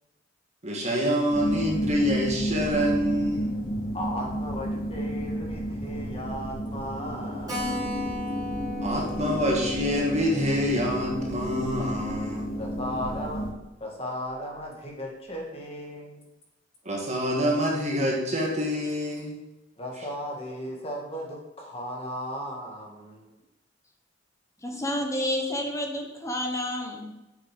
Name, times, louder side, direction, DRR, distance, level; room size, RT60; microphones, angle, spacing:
voice 1, 0.6-3.6 8.8-12.5 16.9-19.3, equal, 35° right, -1 dB, 1.7 m, -26 dB
sound 1, 1.3-13.5, equal, 55° left, 2.7 m, -31 dB
voice 2, 3.9-7.9 12.6-13.5 13.8-16.2 19.8-23.2, equal, 30° left, -1 dB, 2.0 m, -36 dB
Keyboard (musical), 7.5-12.5 12.8-12.9 13.2-13.3 13.5-13.6 14.2-14.6, left 2 dB, 20° right, 3.4 m, -39 dB
voice 3, 24.6-27.1, left 1 dB, 15° left, 3 dB, 1.2 m, -30 dB
7.9 x 6.7 x 5.2 m, 0.99 s
head